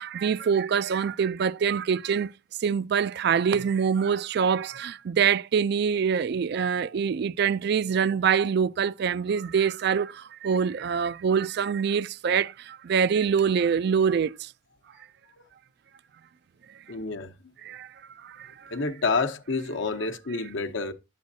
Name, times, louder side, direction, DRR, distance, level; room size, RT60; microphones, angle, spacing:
voice 1, 0.0-2.3 2.6-14.5 17.6-17.9 18.2-18.7, right 7 dB, 55° right, 0.3 m, -25 dB
voice 2, 16.9-17.3 18.7-20.9, left 4 dB, 65° left, 0.9 m, -28 dB
10.5 x 7.7 x 2.7 m
head